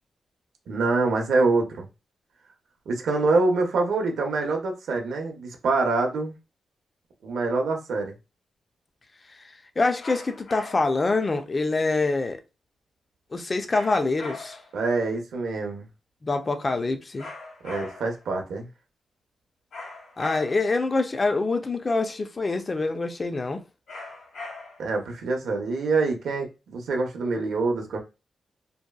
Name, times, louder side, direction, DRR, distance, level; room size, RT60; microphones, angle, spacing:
voice 1, 0.7-1.9 2.9-6.3 7.2-8.1 14.7-15.8 17.6-18.7 24.8-28.0, right 3 dB, 80° right, 0.6 m, -25 dB
voice 2, 9.8-12.4 13.3-14.6 16.2-17.3 20.2-23.6, left 3 dB, 25° left, 0.3 m, -25 dB
sound 1, 10.0-11.0 13.7-14.8 17.2-18.2 19.7-20.8 23.9-25.0, left 3 dB, 70° left, 1.1 m, -40 dB
2.7 x 2.2 x 2.2 m
wide cardioid pair, 160°, 0 cm